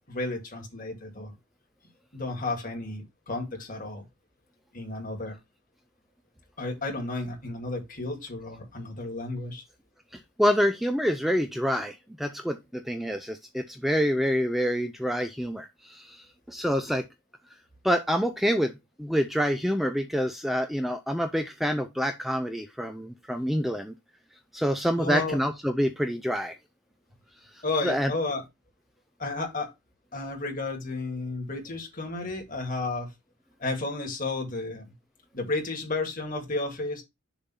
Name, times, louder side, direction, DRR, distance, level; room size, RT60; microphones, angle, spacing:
voice 1, 0.1-1.3 2.1-4.1 4.7-5.4 6.6-9.6 25.0-25.4 27.6-28.4 29.2-29.7 30.1-33.1 33.6-34.9 35.3-37.0, left 2 dB, 40° left, 1.8 m, -32 dB
voice 2, 10.4-17.1 17.8-18.7 19.0-23.9 24.5-26.6 27.8-28.1, equal, ahead, 0.4 m, -27 dB
6.8 x 2.6 x 5.5 m
head